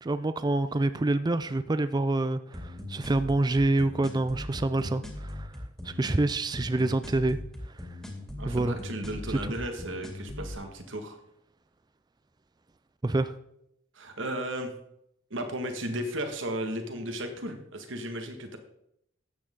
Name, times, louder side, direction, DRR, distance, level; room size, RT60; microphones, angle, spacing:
voice 1, 0.0-5.5 5.8-7.4 8.4-8.8 9.3-9.5 13.0-13.3, right 2 dB, 20° right, 0.4 m, -27 dB
sound 1, 2.5-10.5, left 1 dB, 5° left, 2.4 m, -39 dB
voice 2, 8.4-11.2 13.9-14.7 15.3-18.6, right 1 dB, 65° right, 1.7 m, -35 dB
13.5 x 8.9 x 3.8 m
head